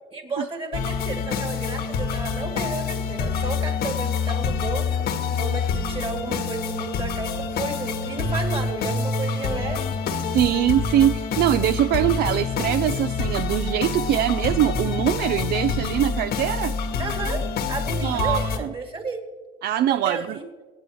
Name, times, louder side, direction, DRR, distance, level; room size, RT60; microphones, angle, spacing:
voice 1, 0.1-5.1 5.3-9.8 17.0-19.2 19.9-20.4, right 3 dB, 30° right, 3 dB, 2.5 m, -32 dB
sound 1, 0.7-18.6, left 5 dB, 70° left, 1.3 m, -26 dB
voice 2, 10.3-16.7 18.0-18.7 19.6-20.4, right 12 dB, 70° right, 12 dB, 0.4 m, -22 dB
25.0 x 8.6 x 3.1 m, 1.3 s
cardioid pair, 110°, 17 cm